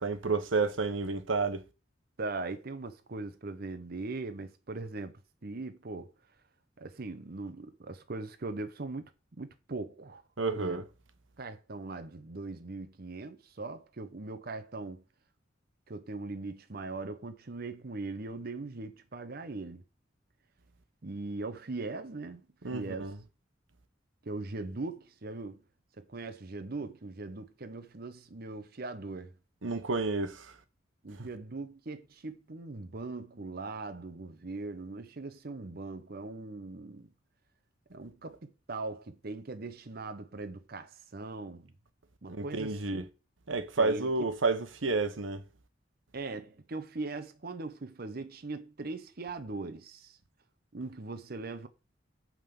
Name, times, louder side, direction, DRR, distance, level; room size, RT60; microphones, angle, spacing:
voice 1, 0.0-1.6 10.4-10.8 22.6-23.2 29.6-30.5 31.2-31.3 42.3-43.0 43.5-45.4, right 3 dB, 85° right, 1.0 m, -30 dB
voice 2, 2.2-6.1 6.8-9.1 9.4-10.2 10.5-10.8 11.4-15.0 15.9-19.8 21.0-22.4 22.7-23.1 24.2-25.6 26.0-29.3 31.0-37.1 37.9-41.7 42.2-43.1 43.8-44.3 46.1-50.2 50.7-51.7, right 3 dB, 50° right, 0.8 m, -40 dB
9.0 x 3.8 x 6.9 m
head